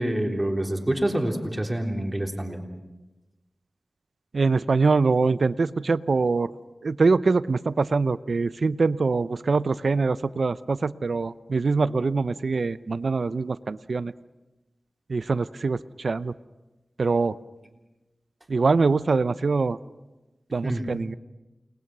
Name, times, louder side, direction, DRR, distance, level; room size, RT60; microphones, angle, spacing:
voice 1, 0.0-2.6 20.6-20.9, right 1 dB, 15° right, 2 dB, 3.6 m, -26 dB
voice 2, 4.3-6.5 6.8-14.1 15.1-16.3 17.0-17.4 18.5-19.8 20.5-21.1, right 4 dB, 70° right, 15 dB, 0.7 m, -23 dB
29.5 x 20.5 x 6.2 m, 1.1 s
wide cardioid pair, 60°, 0 cm